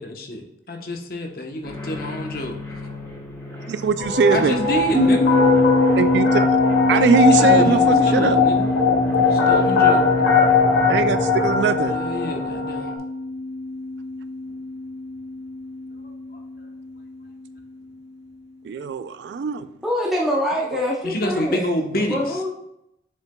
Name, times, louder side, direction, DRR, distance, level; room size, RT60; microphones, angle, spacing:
voice 1, 0.0-0.4 0.7-2.6 4.3-5.3 7.3-8.7 9.2-10.0 11.9-12.9 21.0-22.4, left 1 dB, 55° left, 3 dB, 0.9 m, -27 dB
sound 1, 1.6-11.5, equal, 15° left, 1.5 m, -33 dB
voice 2, 3.7-4.6 6.0-6.4 6.9-8.4 10.9-12.0 18.7-19.7 20.7-20.8, right 5 dB, 70° right, 12 dB, 0.3 m, -21 dB
sound 2, 4.0-12.9, left 5 dB, 85° left, 1.6 m, -20 dB
sound 3, 4.9-17.7, left 2 dB, 20° right, 1.0 m, -25 dB
voice 3, 19.8-22.5, left 1 dB, ahead, -4 dB, 0.7 m, -25 dB
6.9 x 6.7 x 2.2 m, 0.81 s
head